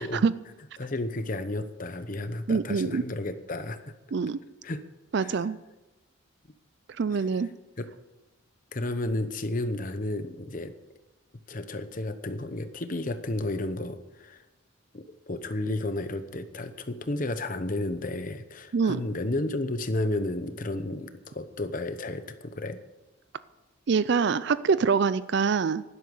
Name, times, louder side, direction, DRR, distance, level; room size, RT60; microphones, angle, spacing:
voice 1, 0.8-3.9 4.6-4.8 5.2-5.4 7.1-7.2 7.8-7.9 8.7-10.7 11.5-14.4 14.9-22.8, left 2 dB, 40° left, 11 dB, 0.9 m, -32 dB
voice 2, 2.5-3.0 4.1-4.4 5.1-5.6 7.0-7.5 18.7-19.0 23.9-25.8, right 5 dB, 55° right, 16 dB, 0.4 m, -24 dB
11.5 x 11.5 x 7.1 m, 1.1 s
head